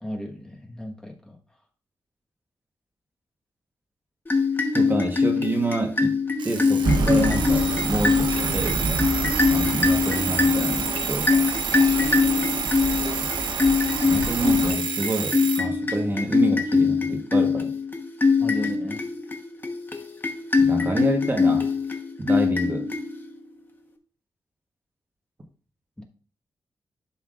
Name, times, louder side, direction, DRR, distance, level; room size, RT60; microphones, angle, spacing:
voice 1, 0.0-1.4 18.4-19.0 26.0-26.1, left 1 dB, 10° left, 0 dB, 1.3 m, -35 dB
sound 1, 4.3-23.5, left 4 dB, 25° left, 1.1 m, -23 dB
voice 2, 4.7-6.2 6.4-8.8 9.5-11.3 14.0-17.7 20.6-21.7 22.2-22.9, right 2 dB, 25° right, 3 dB, 1.1 m, -28 dB
Alarm, 6.4-15.7, right 6 dB, 85° right, 0.8 m, -30 dB
sound 2, 6.8-14.7, right 2 dB, 60° right, 1.6 m, -29 dB
11.5 x 5.6 x 2.4 m, 0.41 s
wide cardioid pair, 130°, 8 cm